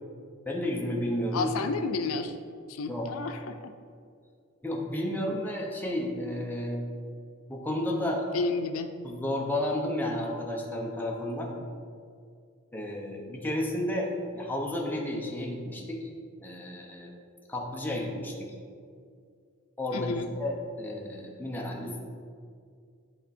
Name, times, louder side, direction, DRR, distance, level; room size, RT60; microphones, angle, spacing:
voice 1, 0.5-1.5 2.9-3.1 4.6-6.8 7.5-8.3 9.0-11.5 12.7-16.0 16.4-17.1 17.5-18.5 19.8-22.0, left 1 dB, 10° left, -1 dB, 0.9 m, -32 dB
voice 2, 1.3-2.3 2.7-3.7 8.3-8.9 19.9-20.3, left 3 dB, 90° left, 8 dB, 0.5 m, -31 dB
10.5 x 3.6 x 4.3 m, 2.2 s
head